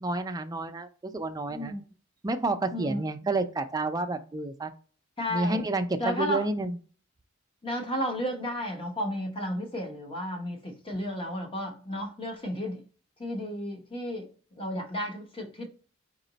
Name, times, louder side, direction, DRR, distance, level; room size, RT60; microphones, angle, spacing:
voice 1, 0.0-1.7 2.2-4.7 5.3-6.8, right 2 dB, 20° right, 0.4 m, -30 dB
voice 2, 1.5-1.8 2.7-3.0 5.2-5.6 6.0-6.4 7.6-12.8 13.2-14.3 14.6-15.7, equal, 25° left, 0.9 m, -33 dB
4.2 x 3.0 x 3.9 m
head